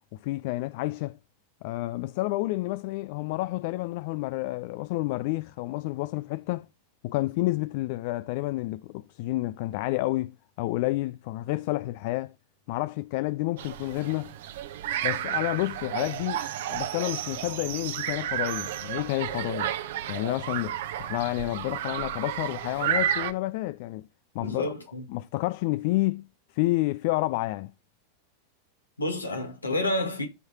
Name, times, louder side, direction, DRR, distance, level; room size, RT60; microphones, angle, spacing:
voice 1, 0.1-1.2 1.6-6.7 7.0-12.3 12.7-14.3 15.0-16.4 16.7-19.8 20.1-24.1 24.3-24.7 25.1-26.3 26.5-27.7, left 19 dB, 50° left, 0.3 m, -29 dB
sound 1, 13.6-23.3, right 11 dB, 55° right, 0.8 m, -32 dB
voice 2, 24.4-25.0 29.0-30.3, left 1 dB, 80° left, 1.8 m, -29 dB
13.0 x 4.7 x 2.8 m
figure-of-eight pair, 90°, 0 cm